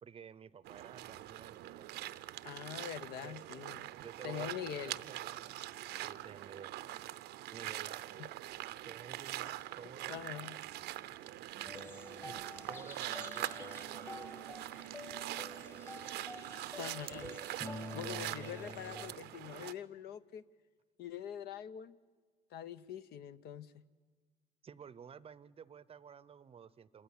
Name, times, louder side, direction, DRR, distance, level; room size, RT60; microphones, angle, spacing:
voice 1, 0.0-1.9 3.2-3.4 4.0-5.5 6.0-6.7 7.5-8.3 8.8-10.6 11.2-11.3 12.1-12.4 12.7-14.5 18.0-18.8 24.6-27.0, right 7 dB, 35° right, 18 dB, 0.6 m, -52 dB
sound 1, 0.6-19.7, right 15 dB, 80° right, 0.7 m, -44 dB
voice 2, 2.4-3.8 4.2-5.0 8.2-8.3 10.1-10.6 16.8-17.6 17.9-20.4 21.0-22.0 22.5-23.8, left 10 dB, 70° left, 13 dB, 0.8 m, -44 dB
sound 2, 11.6-19.1, left 2 dB, 15° left, 1.2 m, -48 dB
27.0 x 14.0 x 9.8 m, 1.5 s
cardioid pair, 110°, 17 cm